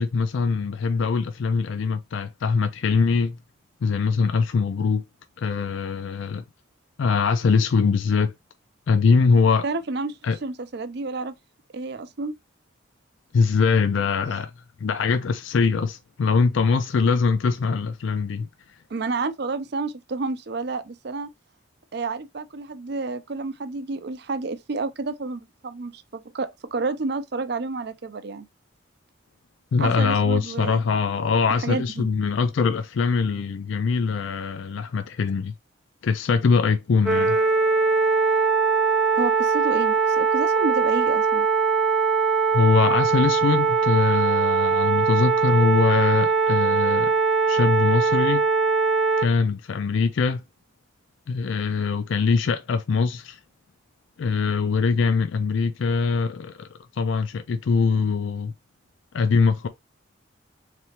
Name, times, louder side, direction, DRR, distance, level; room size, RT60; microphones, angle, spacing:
voice 1, 0.0-3.4 3.8-5.0 5.4-6.5 7.0-8.3 8.9-9.6 10.2-10.4 13.3-14.5 14.8-18.5 29.7-35.5 36.0-37.4 42.5-47.1 47.5-48.4 49.2-50.4 51.3-53.4 54.2-56.7 56.9-58.5 59.1-59.7, left 5 dB, 65° left, 0.4 m, -22 dB
voice 2, 9.6-11.4 11.7-12.3 14.3-14.4 18.9-21.3 21.9-28.5 29.8-30.8 31.6-32.1 39.1-41.5, right 3 dB, 55° right, 0.5 m, -30 dB
sound 1, 37.1-49.3, right 5 dB, ahead, 0.5 m, -21 dB
3.8 x 3.3 x 2.9 m
head